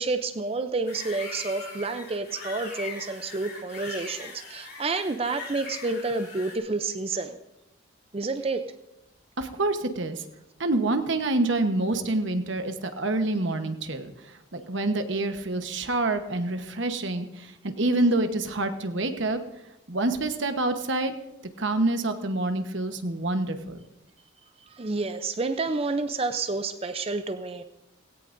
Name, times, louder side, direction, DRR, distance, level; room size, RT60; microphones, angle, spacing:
voice 1, 0.0-7.4 8.1-8.6 24.7-27.6, right 3 dB, 30° right, 10 dB, 0.5 m, -29 dB
sound 1, 0.9-6.6, left 4 dB, 45° left, 3.5 m, -40 dB
voice 2, 9.4-10.2 10.6-19.4 19.9-21.1 21.6-23.8, right 2 dB, 60° right, 7 dB, 1.1 m, -27 dB
17.5 x 17.0 x 2.6 m, 0.91 s
head